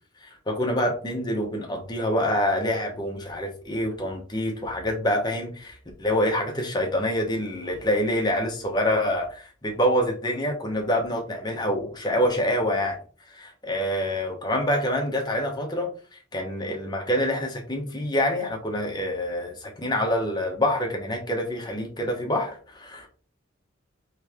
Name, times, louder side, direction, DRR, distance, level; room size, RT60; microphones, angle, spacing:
voice 1, 0.2-13.0 13.4-23.1, left 1 dB, 20° left, 1 dB, 0.9 m, -26 dB
3.2 x 3.1 x 3.6 m, 0.40 s
head